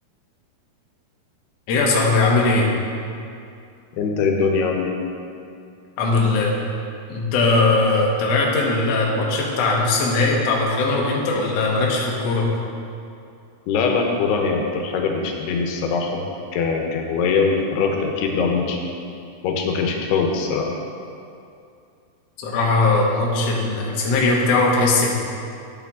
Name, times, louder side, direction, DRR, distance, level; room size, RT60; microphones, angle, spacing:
voice 1, 1.7-2.7 6.0-6.6 7.1-12.5 22.4-25.1, left 3 dB, 65° left, -2 dB, 1.6 m, -19 dB
voice 2, 4.0-5.0 13.7-16.2 16.5-18.8 19.4-20.7, left 5 dB, 90° left, 2 dB, 2.9 m, -22 dB
8.9 x 8.7 x 3.6 m, 2.5 s
omnidirectional pair, 4.6 m